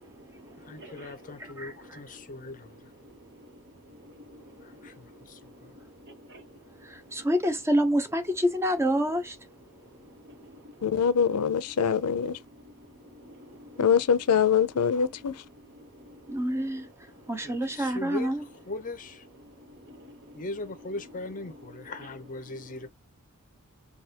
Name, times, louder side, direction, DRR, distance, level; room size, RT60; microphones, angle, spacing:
voice 1, 0.0-7.2 9.8-10.8 12.9-13.8 15.8-16.9 17.5-17.9 19.6-20.4 22.5-22.9, equal, 55° right, 1.1 m, -51 dB
voice 2, 0.7-2.8 4.6-5.7 17.4-19.3 20.3-22.9, left 2 dB, 35° left, 0.6 m, -40 dB
voice 3, 1.4-2.0 6.8-9.4 16.3-16.9 17.3-18.4, equal, 10° right, 0.6 m, -27 dB
voice 4, 10.8-12.4 13.8-15.4, left 7 dB, 85° left, 0.5 m, -24 dB
3.4 x 2.4 x 2.7 m
head